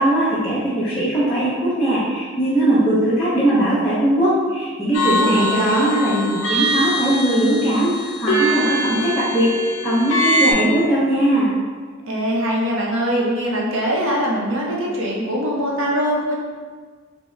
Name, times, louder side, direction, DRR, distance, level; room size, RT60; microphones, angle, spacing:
voice 1, 0.0-7.9 8.2-11.5, right 1 dB, 5° left, -13 dB, 0.5 m, -19 dB
sound 1, 4.9-10.5, right 1 dB, 65° left, 0.5 m, -23 dB
voice 2, 5.1-6.0 12.1-16.4, equal, 70° right, -3 dB, 0.6 m, -22 dB
3.5 x 2.0 x 3.1 m, 1.5 s
head